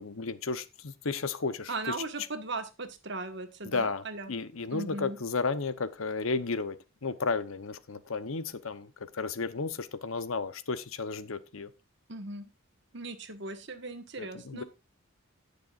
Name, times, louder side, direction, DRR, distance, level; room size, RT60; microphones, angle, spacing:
voice 1, 0.0-1.9 3.6-6.8 7.0-11.7 14.2-14.6, left 4 dB, 75° left, 0.9 m, -33 dB
voice 2, 1.7-4.3 4.7-5.2 12.1-12.5 12.9-14.6, right 3 dB, 55° right, 1.5 m, -38 dB
18.5 x 6.8 x 2.5 m
head